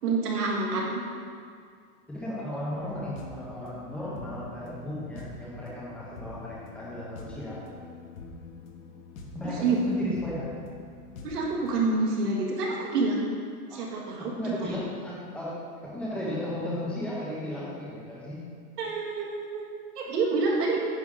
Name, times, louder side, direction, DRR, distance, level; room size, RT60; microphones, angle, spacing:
voice 1, 0.0-1.0 9.4-9.8 11.2-13.3 13.7-14.8 18.8-19.7 20.0-20.8, right 3 dB, 85° right, -3 dB, 2.1 m, -28 dB
voice 2, 2.1-7.6 9.3-10.6 13.7-13.8 14.2-15.5 15.8-18.4, left 1 dB, ahead, -7 dB, 0.6 m, -35 dB
sound 1, 2.8-12.0, left 3 dB, 60° left, 1.2 m, -45 dB
9.7 x 5.2 x 3.6 m, 2.1 s
supercardioid pair, 165°, 46 cm